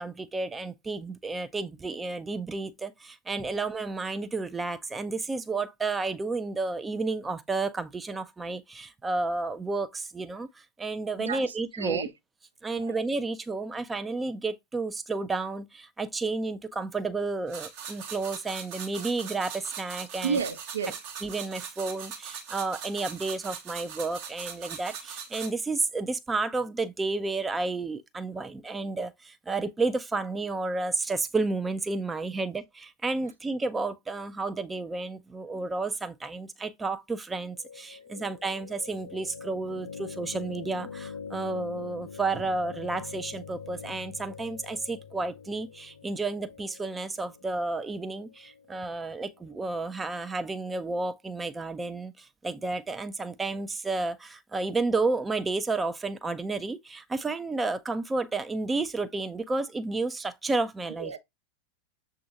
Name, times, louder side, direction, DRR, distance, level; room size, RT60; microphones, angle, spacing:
voice 1, 0.0-12.0 12.6-20.4 21.2-61.1, right 3 dB, 10° right, 0.5 m, -31 dB
voice 2, 11.2-12.1 12.8-13.0 20.2-21.0 38.2-38.3 61.0-61.2, right 6 dB, 70° right, 0.8 m, -32 dB
sound 1, 17.5-25.5, right 7 dB, 45° right, 0.9 m, -41 dB
sound 2, 37.5-49.5, left 6 dB, 65° left, 0.5 m, -44 dB
6.8 x 2.5 x 2.5 m
figure-of-eight pair, 90°, 0 cm